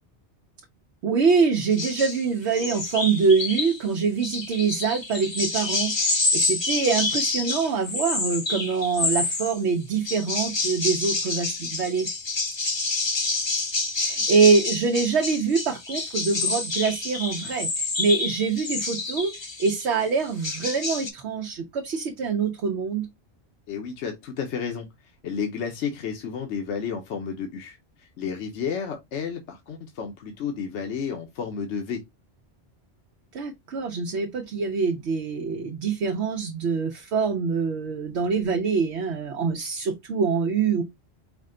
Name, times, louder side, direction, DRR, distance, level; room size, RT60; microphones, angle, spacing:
voice 1, 1.0-12.1 13.9-19.3 19.6-23.1 33.3-40.8, right 5 dB, 70° right, 1.0 m, -24 dB
sound 1, 1.7-2.2 2.5-3.8 4.2-9.6 10.0-19.9 20.2-21.1, left 3 dB, 30° left, 0.6 m, -28 dB
voice 2, 23.7-24.9 25.2-32.0, left 6 dB, 80° left, 1.0 m, -31 dB
4.9 x 2.2 x 3.7 m
omnidirectional pair, 1.2 m